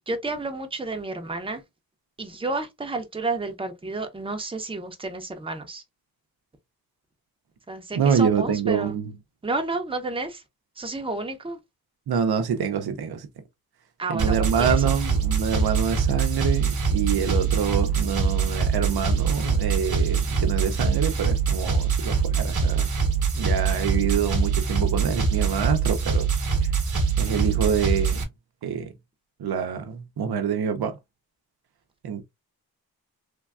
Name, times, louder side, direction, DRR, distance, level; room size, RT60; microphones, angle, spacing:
voice 1, 0.1-1.6 2.2-5.8 7.7-9.0 9.4-10.4 10.8-11.6 14.0-15.0, right 3 dB, 15° right, 0.6 m, -31 dB
voice 2, 8.0-9.1 12.1-13.3 14.1-22.9 23.3-26.3 27.2-28.3 28.6-28.9 29.4-31.0 32.0-32.2, right 7 dB, 80° right, 0.6 m, -26 dB
sound 1, 14.2-28.2, right 5 dB, 55° right, 0.8 m, -24 dB
3.3 x 2.2 x 2.3 m
wide cardioid pair, 80°, 38 cm